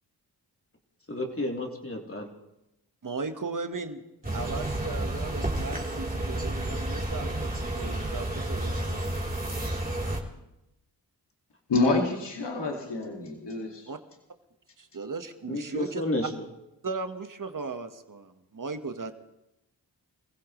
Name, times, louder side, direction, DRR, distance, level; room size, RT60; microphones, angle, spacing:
voice 1, 1.1-2.3 15.5-16.3, left 1 dB, 30° left, 0 dB, 3.5 m, -31 dB
voice 2, 3.0-4.0 4.3-9.1 13.9-14.0 14.8-16.0 16.8-19.1, right 4 dB, 45° right, 8 dB, 1.6 m, -37 dB
sound 1, 4.2-10.2, right 1 dB, 20° right, 3.7 m, -31 dB
voice 3, 11.7-13.9, left 3 dB, 75° left, 1 dB, 2.4 m, -27 dB
27.0 x 15.5 x 3.3 m, 0.90 s
cardioid pair, 40°, 43 cm